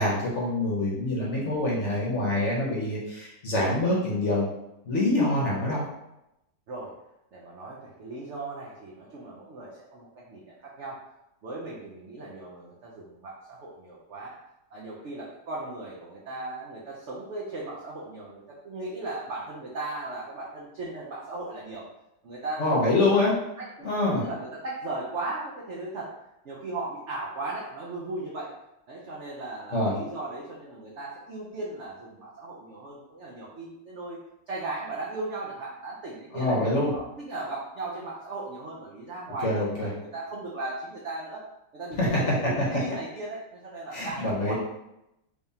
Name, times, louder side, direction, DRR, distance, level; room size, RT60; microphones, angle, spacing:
voice 1, 0.0-4.5 4.8-5.8 22.6-23.3 23.8-24.2 29.7-29.9 36.3-36.9 39.4-39.9 42.0-42.3 43.9-44.5, left 2 dB, 50° left, -5 dB, 1.0 m, -25 dB
voice 2, 7.3-11.0 11.4-14.4 14.7-21.9 22.2-23.1 23.6-23.7 24.1-26.1 26.4-28.5 28.9-34.2 34.5-36.6 36.9-41.4 41.7-44.5, right 2 dB, 70° right, -4 dB, 0.6 m, -37 dB
3.4 x 3.4 x 2.7 m, 0.88 s
omnidirectional pair, 1.9 m